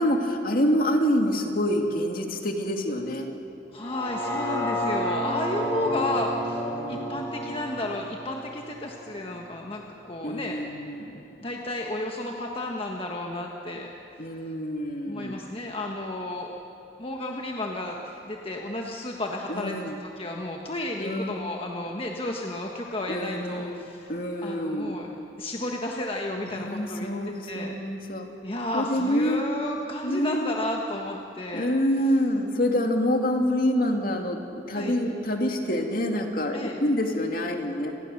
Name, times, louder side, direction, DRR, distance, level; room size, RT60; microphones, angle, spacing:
voice 1, 0.0-3.3 5.6-6.1 6.7-7.2 10.2-11.2 14.2-15.3 19.5-20.0 21.0-21.4 23.1-25.0 26.5-28.3 28.7-29.4 30.0-30.6 31.5-37.9, equal, 50° left, 3 dB, 2.3 m, -27 dB
voice 2, 3.7-10.6 11.4-13.9 15.1-16.5 17.0-19.8 20.2-24.1 24.4-25.1 25.4-27.1 27.5-27.7 28.4-31.7 34.7-35.0 36.5-36.8, left 1 dB, 30° left, 1 dB, 1.4 m, -32 dB
sound 1, 3.8-9.9 10.3-10.4, equal, 15° left, 3.5 m, -32 dB
28.5 x 20.5 x 6.6 m, 2.9 s
head